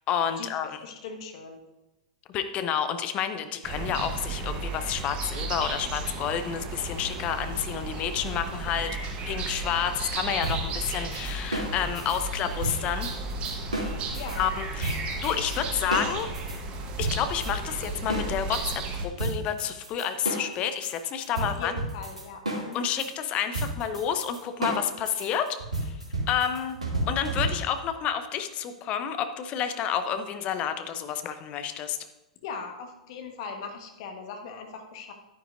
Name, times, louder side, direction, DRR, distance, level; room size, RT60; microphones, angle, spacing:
voice 1, 0.1-0.8 2.3-9.0 9.2-13.1 14.3-16.3 17.0-21.7 22.7-26.0 26.3-26.8 27.1-32.0, left 8 dB, 30° left, 9 dB, 0.8 m, -30 dB
voice 2, 0.8-1.6 14.1-14.4 21.4-22.8 32.4-35.1, left 5 dB, 45° left, 4 dB, 1.4 m, -39 dB
sound 1, 3.6-19.1, right 3 dB, 30° right, 1.1 m, -34 dB
sound 2, 10.4-14.4 14.8-15.6 15.9-18.8 19.2-27.9, right 1 dB, 80° right, 2.4 m, -32 dB
11.0 x 9.6 x 2.6 m, 1.0 s
figure-of-eight pair, 100°, 4 cm